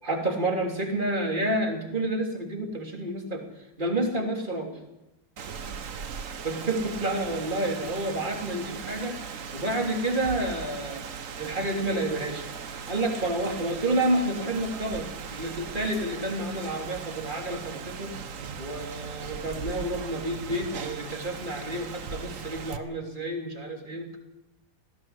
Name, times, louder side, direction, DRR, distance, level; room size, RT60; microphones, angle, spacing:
voice 1, 0.0-3.4 3.8-4.7 6.4-11.0 11.4-18.1 18.6-24.2, right 1 dB, 20° right, 2 dB, 3.3 m, -29 dB
Rain, 5.4-22.8, right 6 dB, 45° right, 1.2 m, -38 dB
19.5 x 16.5 x 8.2 m, 0.91 s
omnidirectional pair, 2.4 m